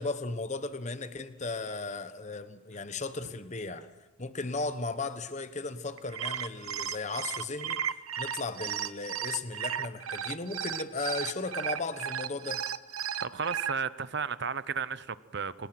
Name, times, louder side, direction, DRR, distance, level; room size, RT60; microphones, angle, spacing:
voice 1, 0.0-3.9 4.2-12.6, left 3 dB, 35° left, 1.1 m, -36 dB
sound 1, 6.0-13.7, right 9 dB, 85° right, 0.9 m, -34 dB
voice 2, 13.2-15.7, right 6 dB, 55° right, 0.8 m, -34 dB
27.5 x 20.0 x 6.0 m
head